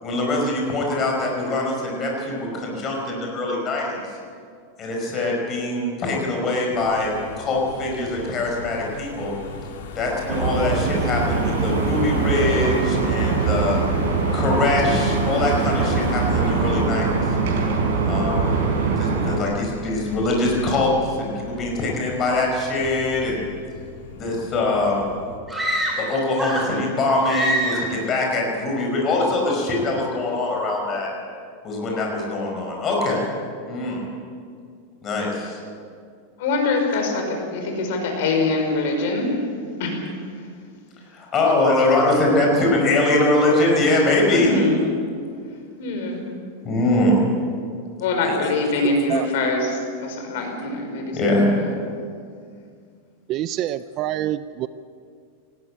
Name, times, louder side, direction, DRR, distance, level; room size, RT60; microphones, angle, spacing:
voice 1, 0.0-4.1 4.8-9.3 9.9-13.8 14.3-17.1 18.1-18.5 19.0-23.5 24.1-25.0 26.0-31.1 31.6-33.2 33.7-34.0 35.0-35.6 41.1-44.5 46.6-47.2 51.1-51.5, left 2 dB, 20° left, -1 dB, 5.1 m, -22 dB
Car passing by / Engine, 6.7-25.4, left 4 dB, 80° left, 3.3 m, -36 dB
sound 1, 10.3-19.4, right 4 dB, 60° right, 4.7 m, -22 dB
sound 2, 25.5-26.8 27.2-28.0, equal, 5° right, 3.4 m, -25 dB
voice 2, 36.4-39.5 39.8-40.4 41.4-41.5 44.3-44.8 45.8-46.2 48.0-51.5, left 3 dB, 55° left, 3 dB, 5.2 m, -24 dB
voice 3, 48.8-49.3 53.3-54.7, right 12 dB, 30° right, 14 dB, 0.4 m, -26 dB
19.5 x 15.5 x 8.8 m, 2.2 s
supercardioid pair, 170°, 0 cm